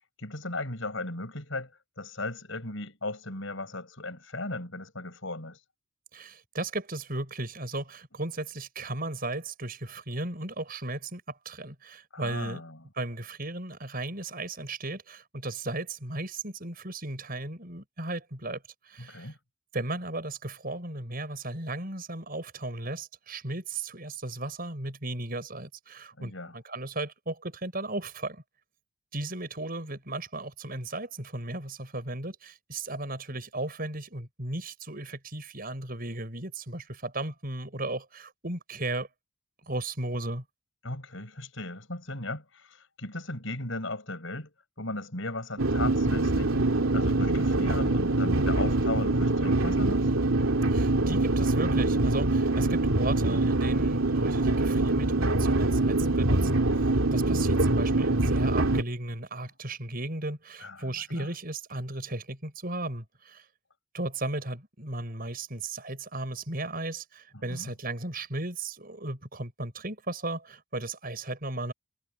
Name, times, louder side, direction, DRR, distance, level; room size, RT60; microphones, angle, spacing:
voice 1, 0.2-1.7 2.0-5.6 12.1-12.8 19.0-19.4 26.2-26.5 40.8-44.5 44.8-46.6 46.9-50.1 60.6-61.3 67.3-67.7, left 2 dB, 70° left, 6.6 m, -37 dB
voice 2, 6.1-12.6 12.9-19.3 19.7-28.4 29.1-39.1 39.7-40.4 50.6-63.4 63.9-71.7, right 2 dB, 45° right, 6.5 m, -35 dB
sound 1, 45.6-58.8, right 2 dB, 85° right, 2.6 m, -24 dB
head